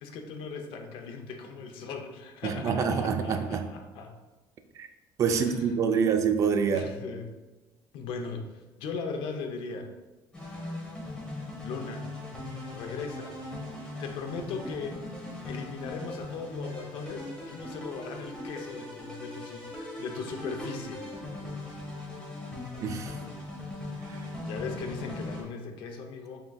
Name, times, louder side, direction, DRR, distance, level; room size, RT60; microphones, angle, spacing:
voice 1, 0.0-4.1 5.3-6.0 6.7-7.3 7.9-9.9 11.6-12.1 12.7-13.3 14.0-21.4 24.4-26.4, left 4 dB, 80° left, 4 dB, 0.6 m, -38 dB
voice 2, 2.4-3.6 4.8-4.9 5.2-6.9 22.8-23.2 24.1-24.2, right 6 dB, 40° right, 6 dB, 0.3 m, -26 dB
sound 1, 10.3-25.4, left 2 dB, 10° left, 0.9 m, -39 dB
4.4 x 3.7 x 2.3 m, 1.1 s
cardioid pair, 165°, 9 cm